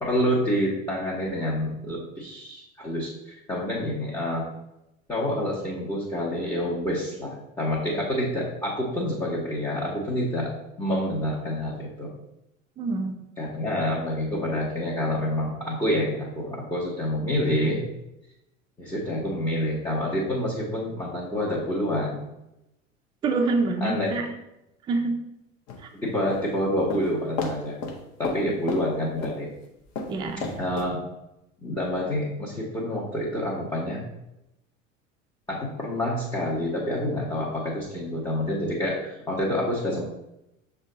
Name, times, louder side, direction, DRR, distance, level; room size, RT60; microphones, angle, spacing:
voice 1, 0.0-4.5 5.1-12.1 13.4-17.8 18.8-22.2 23.8-24.1 25.9-27.8 28.2-29.5 30.6-31.0 31.6-34.0 35.5-40.0, left 1 dB, 10° left, -6 dB, 0.9 m, -27 dB
voice 2, 12.8-13.2 23.2-24.3 24.9-25.2 28.4-28.5 30.1-30.5, right 3 dB, 15° right, 4 dB, 0.3 m, -26 dB
sound 1, 25.7-26.4 26.9-27.1 27.4-27.6 27.8-28.0 28.2-28.4 28.7-28.8 29.2-29.4 30.0-30.9, left 4 dB, 40° left, 0.8 m, -31 dB
6.1 x 2.3 x 3.8 m, 0.89 s
figure-of-eight pair, 80°, 39 cm